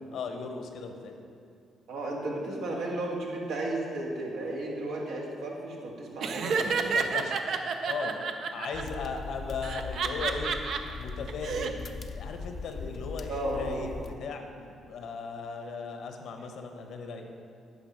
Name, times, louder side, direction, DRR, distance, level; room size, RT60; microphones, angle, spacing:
voice 1, 0.1-1.1 6.9-7.4 7.9-8.2 8.5-10.6 11.0-11.8 12.1-17.3, left 4 dB, 75° left, 4 dB, 0.9 m, -37 dB
voice 2, 1.9-6.9 13.3-13.8, right 1 dB, 80° right, -2 dB, 1.8 m, -34 dB
Laughter, 6.2-8.8 9.6-10.8 11.3-11.7, right 5 dB, 65° right, 0.6 m, -30 dB
sound 1, 8.7-14.1, left 4 dB, 45° left, 0.5 m, -40 dB
9.5 x 4.7 x 5.9 m, 2.3 s
cardioid pair, 90°, 0 cm